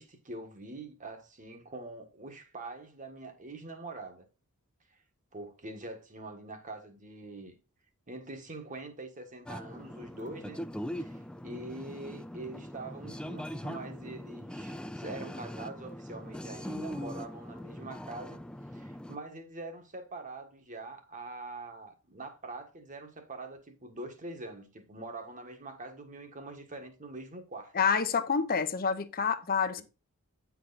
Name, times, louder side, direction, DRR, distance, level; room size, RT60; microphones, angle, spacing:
voice 1, 0.0-4.2 5.3-7.5 8.1-10.6 11.0-18.4 18.7-27.7, right 2 dB, 35° right, 1.4 m, -44 dB
sound 1, 9.5-19.2, equal, 5° left, 0.3 m, -41 dB
voice 2, 27.7-29.8, left 6 dB, 40° left, 0.7 m, -28 dB
9.3 x 4.7 x 3.9 m
head